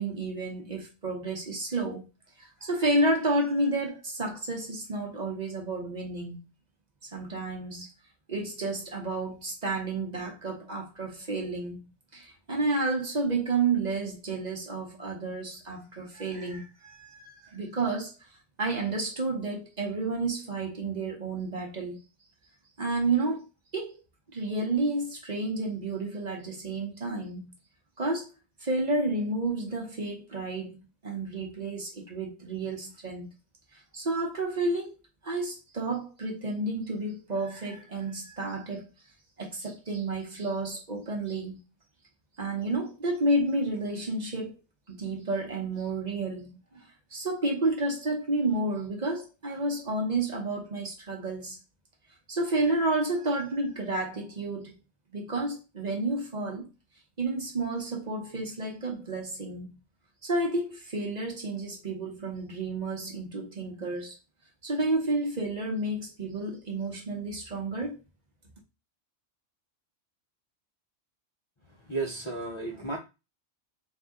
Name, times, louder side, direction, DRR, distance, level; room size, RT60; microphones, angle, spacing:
voice 1, 0.0-2.1 2.4-6.4 7.0-7.9 8.3-18.3 18.6-22.0 22.8-23.5 23.7-24.0 24.3-27.5 28.0-28.3 28.6-33.3 33.7-35.0 35.2-38.9 39.4-41.6 42.4-44.6 44.9-51.6 52.3-54.8 55.1-56.7 57.2-59.8 60.2-64.2 64.6-68.0, right 2 dB, 40° right, 0.9 m, -31 dB
voice 2, 71.6-73.0, right 3 dB, 30° left, 0.6 m, -34 dB
4.0 x 2.7 x 3.5 m
omnidirectional pair, 1.2 m